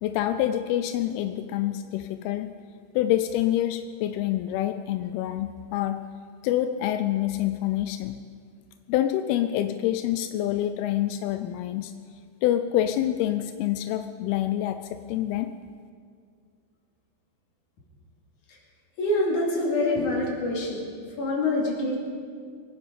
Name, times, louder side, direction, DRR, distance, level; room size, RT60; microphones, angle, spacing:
voice 1, 0.0-2.5 2.9-6.0 6.4-8.2 8.9-11.9 12.4-15.5, left 12 dB, 85° left, 8 dB, 2.2 m, -26 dB
voice 2, 19.0-20.8 21.2-22.0, left 2 dB, 50° left, -1 dB, 3.4 m, -25 dB
23.0 x 10.0 x 5.1 m, 2.2 s
omnidirectional pair, 4.9 m